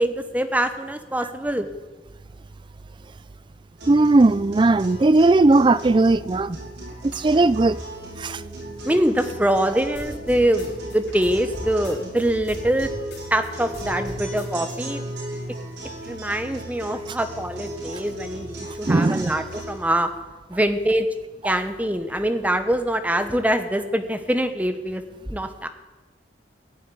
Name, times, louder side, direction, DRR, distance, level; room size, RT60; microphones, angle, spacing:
voice 1, 0.0-1.7 8.8-12.9 13.3-15.0 16.1-20.1 20.5-21.1 21.4-25.0 25.3-25.7, right 1 dB, 10° right, 1.0 m, -24 dB
sound 1, 3.8-19.8, right 1 dB, 80° right, 6.3 m, -36 dB
voice 2, 3.9-6.6 7.0-7.8 8.2-8.4 18.8-19.4 21.4-21.6, right 2 dB, 25° right, 0.4 m, -18 dB
sound 2, 9.9-12.2 12.5-14.7, left 1 dB, 60° left, 4.6 m, -39 dB
16.5 x 7.4 x 9.8 m
head